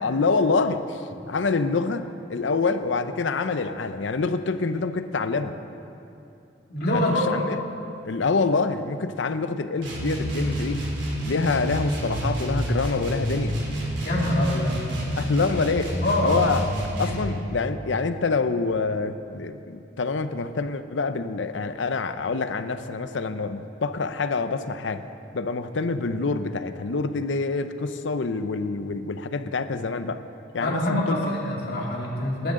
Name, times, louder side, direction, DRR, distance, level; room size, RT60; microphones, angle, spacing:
voice 1, 0.0-5.6 6.9-7.6 8.0-10.8 11.2-13.6 15.2-16.6 17.0-25.0 25.3-30.2 30.5-31.3, left 4 dB, 85° left, 11 dB, 0.6 m, -26 dB
voice 2, 6.7-7.3 14.0-14.8 16.0-16.3 30.6-32.5, left 1 dB, 60° left, -3 dB, 2.7 m, -25 dB
sound 1, 9.8-17.3, equal, 75° right, 3.2 m, -28 dB
20.0 x 11.5 x 3.8 m, 2.7 s
head